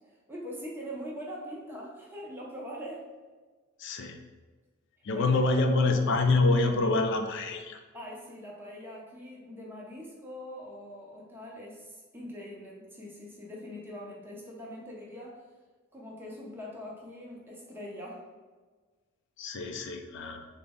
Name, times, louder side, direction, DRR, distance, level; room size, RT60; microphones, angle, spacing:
voice 1, 0.3-3.1 5.1-5.7 7.9-15.4 15.9-18.2, equal, 10° right, -4 dB, 0.6 m, -42 dB
voice 2, 3.8-4.2 5.0-7.8 19.4-20.5, left 3 dB, 60° left, 5 dB, 0.4 m, -26 dB
3.9 x 2.1 x 3.5 m, 1.4 s
head